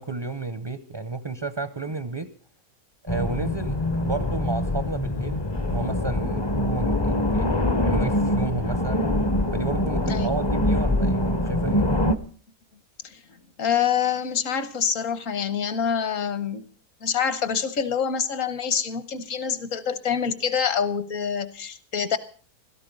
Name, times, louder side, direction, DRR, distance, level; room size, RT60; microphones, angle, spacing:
voice 1, 0.0-2.3 3.0-5.4 5.7-9.0 9.5-11.9, right 3 dB, 30° right, 12 dB, 0.5 m, -32 dB
sound 1, 3.1-12.1, left 1 dB, 30° left, 0.5 m, -24 dB
voice 2, 13.6-16.6 17.0-22.2, left 7 dB, 60° left, 14 dB, 1.5 m, -26 dB
16.5 x 13.0 x 5.3 m, 0.41 s
omnidirectional pair, 1.6 m